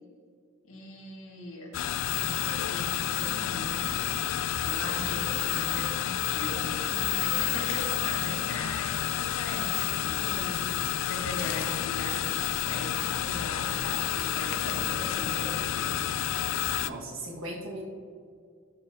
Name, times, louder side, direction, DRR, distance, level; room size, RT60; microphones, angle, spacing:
voice 1, 0.6-1.7 2.2-12.2 12.6-15.9, left 1 dB, 90° left, -2 dB, 2.0 m, -40 dB
sound 1, 1.7-16.9, left 11 dB, 70° left, 0.3 m, -30 dB
voice 2, 16.8-17.8, right 1 dB, 70° right, -2 dB, 1.7 m, -38 dB
11.5 x 7.6 x 2.8 m, 2.2 s
head